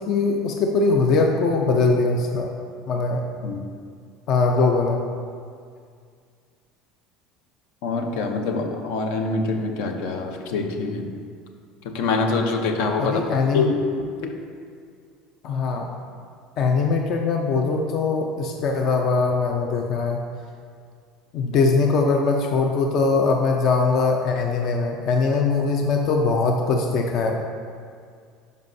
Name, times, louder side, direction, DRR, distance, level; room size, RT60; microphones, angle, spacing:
voice 1, 0.1-2.5 2.9-3.2 4.3-5.0 13.0-13.7 15.4-15.9 16.6-20.2 21.3-27.4, left 4 dB, 50° left, 2 dB, 0.5 m, -21 dB
voice 2, 7.8-11.1 11.8-13.2 13.5-14.3, left 3 dB, 75° left, 4 dB, 0.7 m, -25 dB
10.5 x 5.2 x 2.7 m, 2.2 s
cardioid pair, 150°, 0 cm